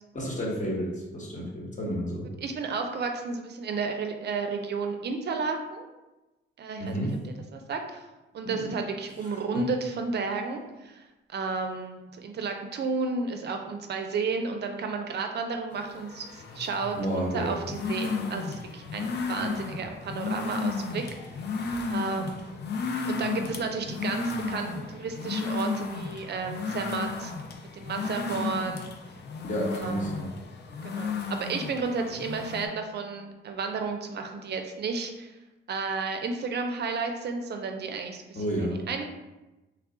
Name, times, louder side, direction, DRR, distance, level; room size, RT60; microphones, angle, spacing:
voice 1, 0.1-2.2 6.8-7.1 8.4-8.7 9.3-9.6 17.0-17.6 29.5-30.3 38.3-38.8, equal, 35° left, -3 dB, 1.1 m, -31 dB
voice 2, 2.4-5.8 6.6-6.9 7.5-8.1 8.3-21.3 21.9-22.6 23.1-27.3 27.7-28.9 29.8-30.3 30.8-35.3 35.7-39.0, right 4 dB, 55° right, 5 dB, 0.4 m, -32 dB
sound 1, 15.7-32.7, left 4 dB, 55° left, 0.5 m, -34 dB
3.3 x 2.3 x 3.7 m, 1.0 s
cardioid pair, 110°, 21 cm